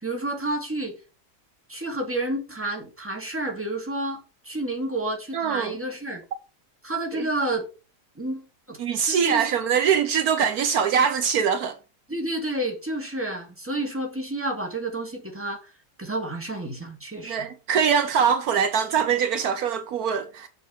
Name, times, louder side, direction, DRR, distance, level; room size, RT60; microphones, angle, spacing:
voice 1, 0.0-1.0 1.7-6.2 6.8-7.7 8.2-8.4 8.7-8.8 9.1-9.5 12.1-15.6 16.0-17.5, right 1 dB, 10° right, 2.4 m, -30 dB
voice 2, 5.3-5.8 7.1-7.3 8.8-11.8 17.2-20.5, right 7 dB, 70° right, 1.3 m, -23 dB
7.1 x 5.9 x 6.4 m
omnidirectional pair, 1.7 m